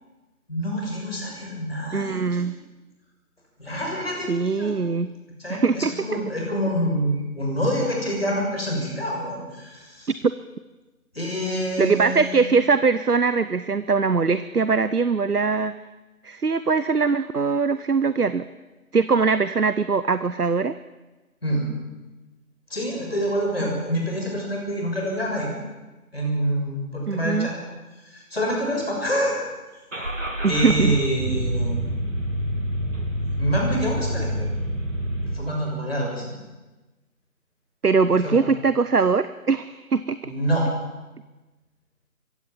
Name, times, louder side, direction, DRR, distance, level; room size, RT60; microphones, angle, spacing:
voice 1, 0.5-2.4 3.6-4.7 5.4-10.1 11.1-12.4 21.4-21.7 22.7-25.5 26.1-27.5 28.1-29.4 30.5-31.9 33.4-34.5 35.2-36.4 38.2-38.4 40.2-40.7, equal, 40° left, -1 dB, 6.6 m, -26 dB
voice 2, 1.9-2.6 4.3-5.1 5.5-6.2 10.2-10.3 11.8-15.7 16.2-18.5 18.9-20.7 23.6-23.7 27.1-27.5 30.4-31.0 37.8-40.3, right 4 dB, 90° right, 13 dB, 1.0 m, -21 dB
Car / Engine starting, 29.9-35.3, equal, 55° right, 2.9 m, -27 dB
23.0 x 16.5 x 7.4 m, 1.1 s
figure-of-eight pair, 175°, 44 cm